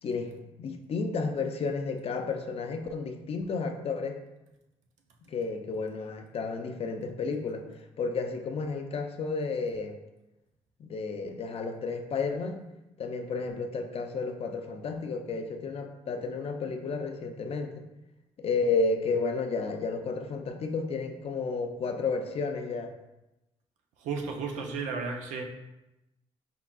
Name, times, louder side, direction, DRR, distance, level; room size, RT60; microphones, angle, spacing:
voice 1, 0.0-4.2 5.2-7.6 8.0-10.0 10.8-12.6 13.0-17.8 18.4-22.9, left 4 dB, 55° left, 5 dB, 0.5 m, -32 dB
voice 2, 24.0-25.4, right 4 dB, 90° right, 3 dB, 0.5 m, -33 dB
4.4 x 3.7 x 2.3 m, 0.96 s
supercardioid pair, 65°, 12 cm